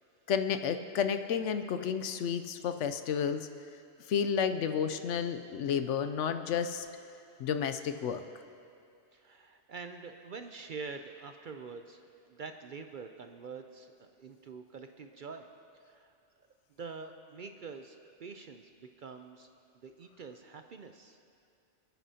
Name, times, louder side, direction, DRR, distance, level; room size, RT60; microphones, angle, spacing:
voice 1, 0.3-3.5 4.1-6.9 7.4-8.2, left 7 dB, 80° left, 9 dB, 0.9 m, -31 dB
voice 2, 9.1-12.0 12.3-15.5 15.8-19.5 19.7-21.2, right 5 dB, 55° right, 6 dB, 0.6 m, -46 dB
27.0 x 9.1 x 2.8 m, 2.5 s
omnidirectional pair, 1.3 m